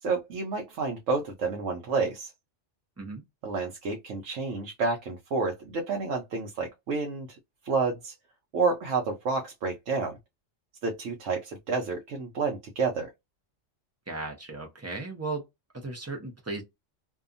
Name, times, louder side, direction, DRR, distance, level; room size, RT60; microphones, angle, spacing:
voice 1, 0.0-2.3 3.4-7.3 7.6-8.1 8.5-10.2 10.8-13.1, right 4 dB, 75° right, 1.0 m, -29 dB
voice 2, 14.1-15.4 15.7-16.6, right 3 dB, 20° right, 0.4 m, -36 dB
2.7 x 2.3 x 2.5 m
omnidirectional pair, 1.3 m